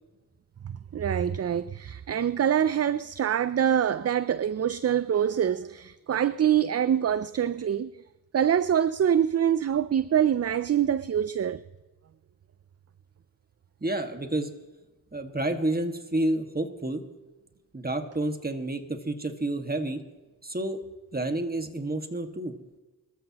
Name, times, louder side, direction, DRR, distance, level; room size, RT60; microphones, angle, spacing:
voice 1, 0.9-7.9 8.3-11.6, right 9 dB, 45° right, 0.4 m, -25 dB
voice 2, 13.8-14.5 15.1-17.0 17.7-20.0 20.4-20.8 21.1-22.5, right 1 dB, 25° right, 1.8 m, -29 dB
24.0 x 13.5 x 3.0 m
cardioid pair, 50°, 35 cm